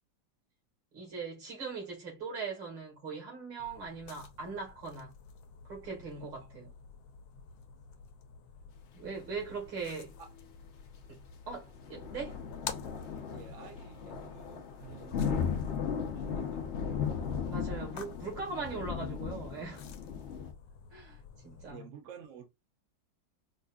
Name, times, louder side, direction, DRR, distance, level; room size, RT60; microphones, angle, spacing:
voice 1, 0.9-5.1 5.7-6.7 7.3-7.5 8.9-10.1 11.1-12.4 17.5-19.8 20.9-21.9, right 4 dB, 75° right, 2.6 m, -40 dB
sound 1, 3.6-21.7, left 6 dB, 90° left, 1.4 m, -50 dB
sound 2, 11.8-20.5, left 7 dB, 65° left, 0.6 m, -36 dB
voice 2, 13.3-17.2 18.7-18.8 21.7-22.5, right 7 dB, 55° right, 0.9 m, -52 dB
5.2 x 2.5 x 2.3 m
omnidirectional pair, 2.0 m